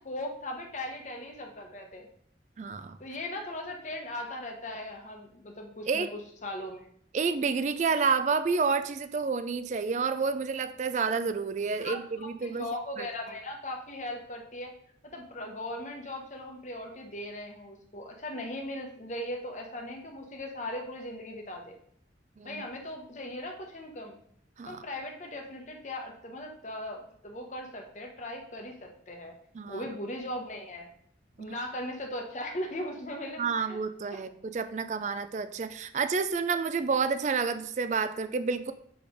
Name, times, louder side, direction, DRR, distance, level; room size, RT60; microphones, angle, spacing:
voice 1, 0.0-2.1 3.0-6.9 11.8-14.7 15.0-21.8 22.4-24.2 24.7-29.4 29.7-30.9 31.4-33.8 34.1-34.2, left 1 dB, 40° left, 2 dB, 1.0 m, -38 dB
voice 2, 2.6-3.0 5.9-6.1 7.1-12.7 13.0-13.1 22.4-22.6 24.6-24.8 29.6-29.8 31.4-31.5 33.4-38.7, right 5 dB, 40° right, 10 dB, 0.3 m, -29 dB
7.0 x 3.3 x 5.1 m, 0.66 s
head